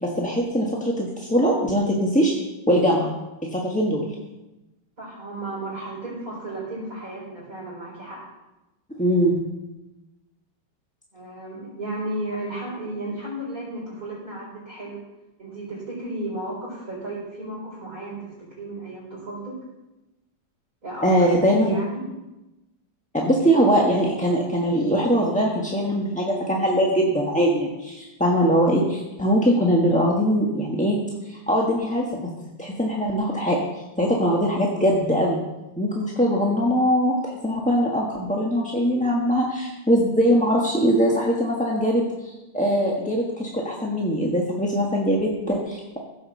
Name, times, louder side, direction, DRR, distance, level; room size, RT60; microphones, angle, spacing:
voice 1, 0.0-2.3 2.7-3.1 3.5-4.1 9.0-9.4 21.0-21.8 23.1-31.0 31.2-32.1 32.6-33.6 34.0-35.4 35.8-46.0, equal, 5° left, -3 dB, 1.0 m, -21 dB
voice 2, 5.0-8.2 11.1-15.0 15.4-19.5 20.8-22.0, right 1 dB, 40° right, -8 dB, 4.8 m, -34 dB
16.0 x 6.2 x 6.8 m, 1.0 s
omnidirectional pair, 2.2 m